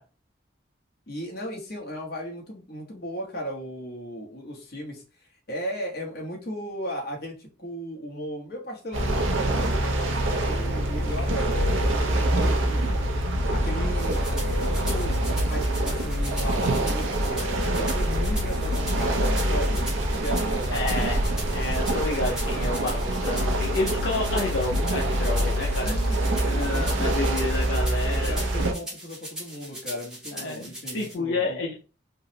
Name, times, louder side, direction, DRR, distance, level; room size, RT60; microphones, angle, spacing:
voice 1, 1.1-14.3 14.6-19.8 20.1-20.9 25.8-27.2 28.1-31.6, equal, 55° left, -1 dB, 1.0 m, -36 dB
sound 1, 8.9-28.7, right 1 dB, 90° right, 0.6 m, -25 dB
sound 2, 10.3-19.0, left 1 dB, 45° right, 0.5 m, -41 dB
sound 3, 14.0-31.1, right 1 dB, 5° right, 0.7 m, -40 dB
voice 2, 20.7-21.2 21.5-25.9 26.4-28.3 30.3-31.7, left 2 dB, 70° left, -2 dB, 0.6 m, -30 dB
3.6 x 2.0 x 2.8 m, 0.34 s
head